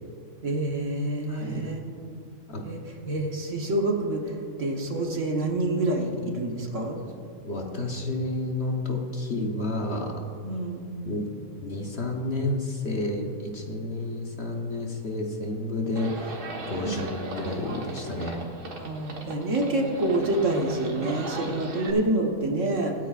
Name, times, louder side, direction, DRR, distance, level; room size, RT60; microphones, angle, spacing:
voice 1, 0.4-1.8 2.6-2.8 3.0-7.0 10.4-10.9 16.8-17.0 18.7-22.9, right 2 dB, 55° right, 1 dB, 1.5 m, -27 dB
voice 2, 1.3-1.7 2.5-2.7 7.4-10.2 11.0-11.3 11.6-16.4 16.7-18.4, left 2 dB, 45° left, 1 dB, 1.2 m, -30 dB
Livestock farm animals working animals, 16.0-21.9, right 2 dB, 80° right, 2.0 m, -37 dB
25.0 x 9.3 x 2.5 m, 2.5 s
omnidirectional pair, 1.7 m